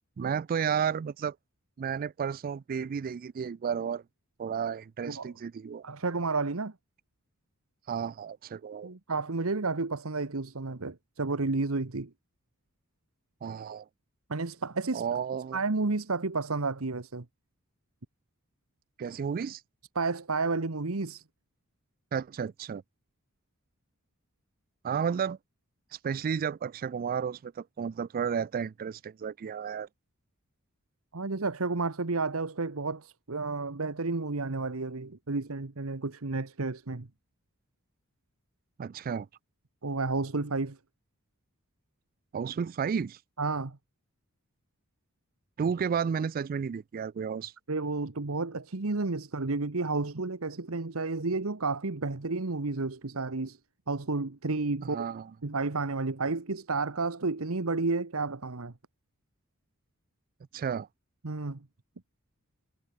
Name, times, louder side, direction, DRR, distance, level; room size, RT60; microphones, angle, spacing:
voice 1, 0.2-1.4 1.8-4.0 4.4-5.8 7.9-8.9 13.4-13.9 14.9-15.6 19.0-19.6 22.1-22.8 24.8-25.4 26.0-29.9 38.8-39.3 42.3-43.2 45.6-47.5 54.8-55.3 60.5-60.9, right 7 dB, 40° right, 0.3 m, -32 dB
voice 2, 5.8-6.7 8.8-12.1 14.3-15.0 15.5-17.2 19.9-21.2 31.1-37.1 39.8-40.8 43.4-43.8 47.7-53.6 53.9-55.1 55.4-58.7 61.2-61.6, right 3 dB, 70° right, 1.2 m, -31 dB
head